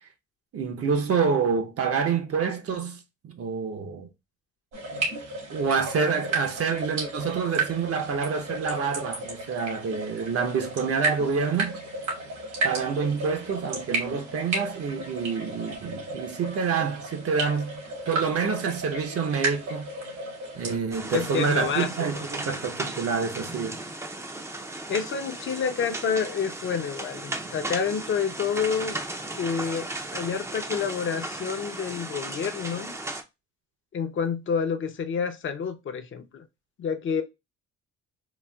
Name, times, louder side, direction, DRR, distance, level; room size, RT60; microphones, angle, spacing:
voice 1, 0.5-4.1 5.5-11.8 12.6-19.9 20.5-23.8, right 5 dB, 50° right, 0.7 m, -27 dB
sound 1, 4.7-20.8, right 3 dB, 80° right, 1.9 m, -33 dB
sound 2, 20.9-33.2, right 2 dB, 10° right, 0.4 m, -36 dB
voice 2, 21.1-21.9 22.2-22.3 24.9-29.0 29.4-32.9 33.9-36.4 36.8-37.2, left 6 dB, 40° left, 0.6 m, -29 dB
4.0 x 2.3 x 2.2 m
cardioid pair, 90°, 30 cm